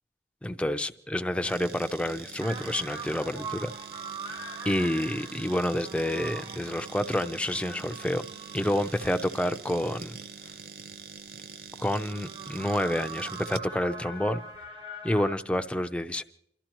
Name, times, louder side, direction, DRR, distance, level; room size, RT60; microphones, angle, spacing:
voice 1, 0.4-3.7 4.6-8.2 8.5-10.1 11.8-14.4 15.0-16.2, left 1 dB, 5° left, 8 dB, 0.5 m, -28 dB
sound 1, 1.4-14.7, right 6 dB, 60° right, 0.5 m, -44 dB
sound 2, 2.4-9.4 10.0-10.1 12.0-15.4, right 3 dB, 30° right, 0.9 m, -42 dB
Explosion / Shatter, 8.6-11.4, equal, 80° right, 6.9 m, -53 dB
28.5 x 13.0 x 3.0 m, 0.76 s
head